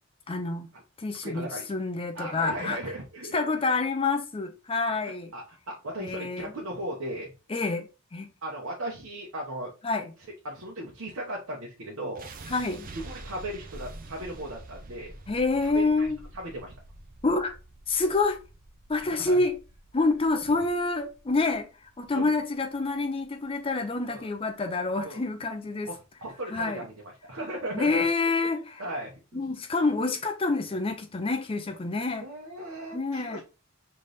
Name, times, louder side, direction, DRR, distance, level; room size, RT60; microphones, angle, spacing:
voice 1, 0.3-0.7 1.0-2.8 3.3-5.3 6.0-6.5 7.5-8.3 9.8-10.1 12.5-12.9 15.3-16.2 17.2-17.6 17.9-18.4 18.9-19.6 19.9-21.7 22.0-25.9 26.5-26.8 27.7-28.8 29.3-32.3 32.9-33.4, left 3 dB, 25° left, 0.5 m, -27 dB
voice 2, 1.2-1.7 2.1-3.4 4.9-7.3 8.4-9.7 10.4-12.3 12.9-15.1 15.7-16.7 19.1-19.4 22.1-22.3 24.1-24.3 25.0-25.2 25.9-28.1 28.8-29.4 32.2-33.4, right 1 dB, 70° right, 1.1 m, -37 dB
sound 1, 12.2-24.2, right 2 dB, 40° right, 0.6 m, -47 dB
3.4 x 3.3 x 4.0 m
head